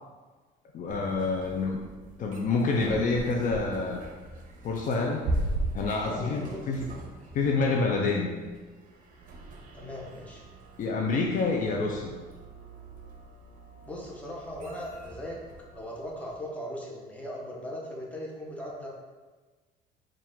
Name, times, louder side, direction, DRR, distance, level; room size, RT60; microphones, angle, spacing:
voice 1, 0.7-1.9 2.2-4.0 4.6-5.2 5.7-6.9 7.3-8.3 10.8-12.1, left 3 dB, 50° left, 1 dB, 0.5 m, -27 dB
sound 1, 0.9-16.4, right 1 dB, 55° right, 0.7 m, -39 dB
voice 2, 6.0-6.6 7.2-7.3 9.7-10.4 13.9-15.4 15.7-18.9, equal, 10° left, -4 dB, 0.9 m, -38 dB
4.5 x 2.5 x 3.6 m, 1.3 s
cardioid pair, 110°, 17 cm